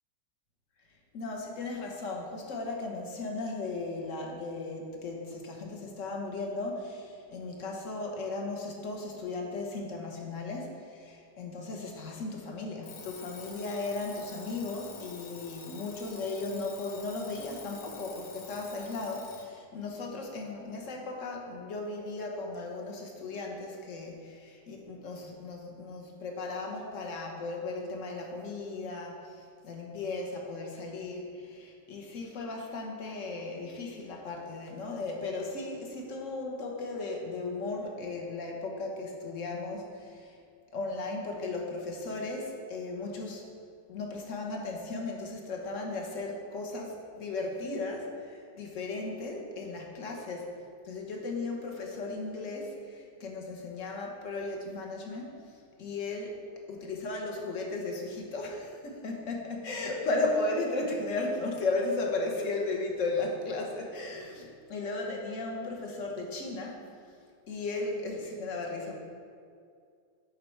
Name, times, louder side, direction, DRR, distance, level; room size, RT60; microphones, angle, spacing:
voice 1, 1.1-40.4 40.7-43.5 43.9-50.6 50.8-55.5 55.8-66.9 67.5-69.0, left 3 dB, 50° left, 1 dB, 1.3 m, -36 dB
Alarm, 12.8-19.5, left 5 dB, 70° left, 1.7 m, -48 dB
11.0 x 4.7 x 4.5 m, 2.3 s
omnidirectional pair, 2.0 m